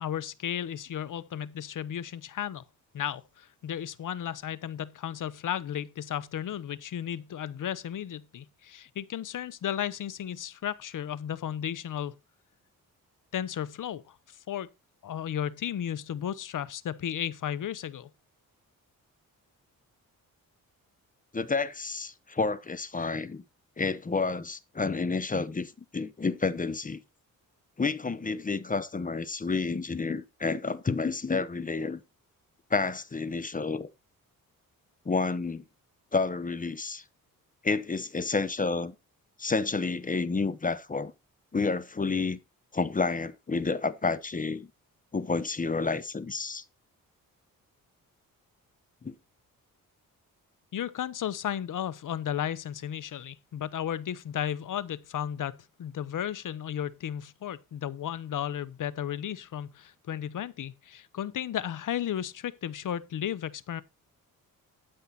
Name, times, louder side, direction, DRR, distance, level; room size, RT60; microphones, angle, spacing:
voice 1, 0.0-2.6 2.9-12.1 13.3-14.7 15.0-18.1 50.7-63.8, left 10 dB, 60° left, 0.8 m, -34 dB
voice 2, 21.3-23.4 23.8-27.0 27.8-32.0 32.7-33.9 35.1-35.6 36.1-37.0 37.6-38.9 39.4-41.1 41.5-42.4 42.7-44.7 45.1-46.6 49.0-49.1, left 4 dB, 25° left, 0.8 m, -30 dB
12.0 x 5.6 x 4.3 m
cardioid pair, 95°, 35 cm